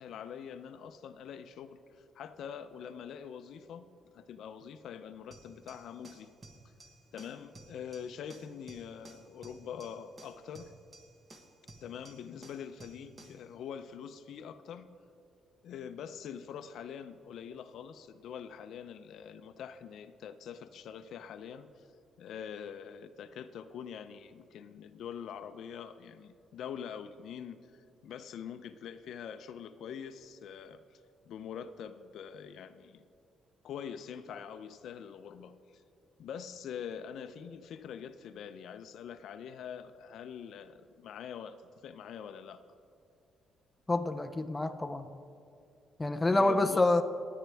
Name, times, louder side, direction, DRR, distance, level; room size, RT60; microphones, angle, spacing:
voice 1, 0.0-3.8 4.1-6.3 7.1-10.7 11.8-14.9 15.6-21.9 22.2-31.0 31.2-33.0 33.6-35.8 36.2-41.6 41.8-42.6 46.3-47.0, left 8 dB, 65° left, 11 dB, 0.6 m, -44 dB
sound 1, 5.3-13.5, right 2 dB, 25° right, 1.2 m, -55 dB
voice 2, 43.9-45.1 46.0-47.0, left 2 dB, 10° left, 7 dB, 0.5 m, -27 dB
24.0 x 9.5 x 3.4 m, 2.5 s
cardioid pair, 145°, 0 cm